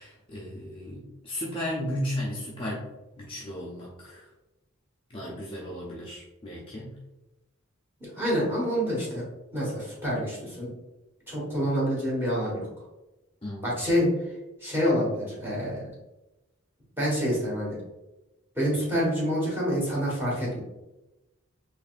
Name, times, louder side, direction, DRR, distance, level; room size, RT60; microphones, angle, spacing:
voice 1, 0.0-2.9 3.2-4.3 5.1-7.0 13.4-13.7, equal, 25° left, -5 dB, 0.6 m, -35 dB
voice 2, 8.0-9.2 9.5-10.7 11.3-12.7 13.6-14.1 14.6-15.8 17.0-17.8 18.5-20.6, equal, 10° right, -6 dB, 1.5 m, -27 dB
4.0 x 3.2 x 2.5 m, 1.0 s
head